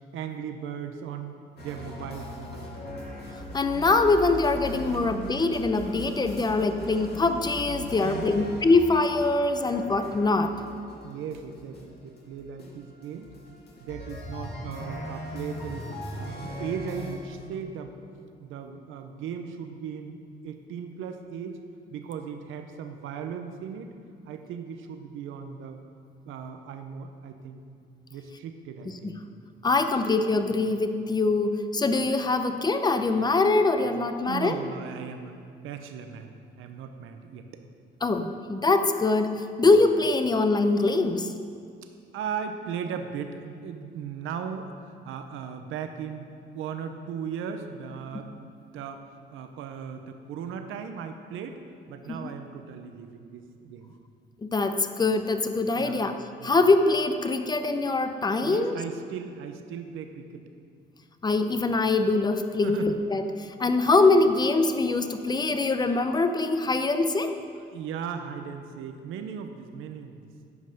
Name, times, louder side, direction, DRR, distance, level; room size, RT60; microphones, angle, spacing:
voice 1, 0.1-1.3 1.6-2.7 8.0-8.6 11.0-13.3 13.8-15.9 16.1-18.0 18.4-21.6 21.9-23.9 24.3-25.8 26.3-27.6 28.1-29.2 34.2-37.6 42.1-46.3 46.5-51.6 51.9-53.9 55.8-56.1 56.4-56.6 58.4-60.4 62.6-63.0 67.7-70.2, right 7 dB, 85° right, 6 dB, 0.7 m, -37 dB
sound 1, 1.6-17.2, equal, 55° left, 2.1 m, -39 dB
voice 2, 3.5-10.6 29.0-29.1 29.6-34.6 38.0-41.3 52.1-52.2 54.4-56.1 56.4-58.8 61.2-67.3, left 3 dB, 20° left, 8 dB, 0.6 m, -23 dB
9.6 x 5.4 x 6.4 m, 2.3 s
cardioid pair, 90°, 20 cm